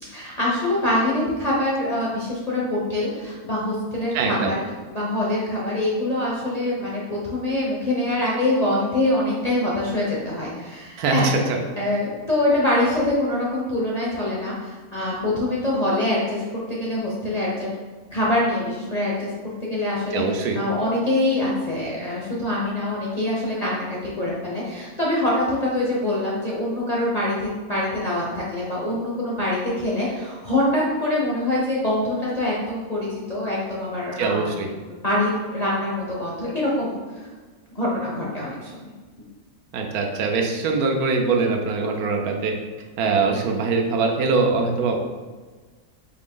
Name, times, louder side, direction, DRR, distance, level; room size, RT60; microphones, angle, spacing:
voice 1, 0.1-4.6 4.9-11.3 11.8-16.4 16.7-17.7 18.1-19.3 19.6-34.5 34.9-37.3 37.7-38.9, left 1 dB, 40° left, -6 dB, 0.6 m, -24 dB
voice 2, 4.1-4.5 11.0-11.3 20.1-20.6 34.2-34.7 39.7-42.5 43.0-45.0, right 4 dB, 85° right, 2 dB, 1.1 m, -22 dB
4.5 x 2.5 x 3.6 m, 1.4 s
omnidirectional pair, 1.6 m